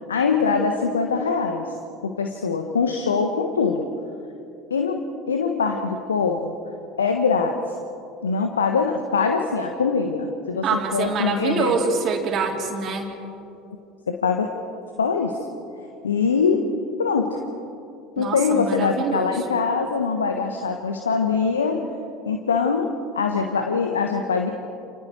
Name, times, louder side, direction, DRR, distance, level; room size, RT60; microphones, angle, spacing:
voice 1, 0.1-1.7 2.0-3.9 4.7-6.5 7.0-7.6 8.2-11.7 14.1-14.5 15.0-15.4 16.0-16.6 17.0-17.4 18.2-21.8 22.2-24.5, left 5 dB, 75° left, 4 dB, 1.4 m, -23 dB
voice 2, 10.6-13.1 18.2-19.3, right 5 dB, 40° right, 1 dB, 3.5 m, -25 dB
29.0 x 28.5 x 4.7 m, 2.6 s
figure-of-eight pair, 70°, 0 cm